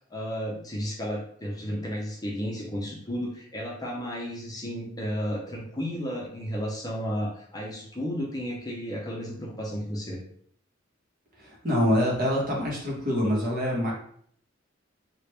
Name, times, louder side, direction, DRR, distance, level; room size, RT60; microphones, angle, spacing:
voice 1, 0.1-10.2, equal, 20° left, -3 dB, 0.6 m, -33 dB
voice 2, 11.4-13.9, equal, 50° right, -3 dB, 1.1 m, -25 dB
3.1 x 2.4 x 3.3 m, 0.62 s
head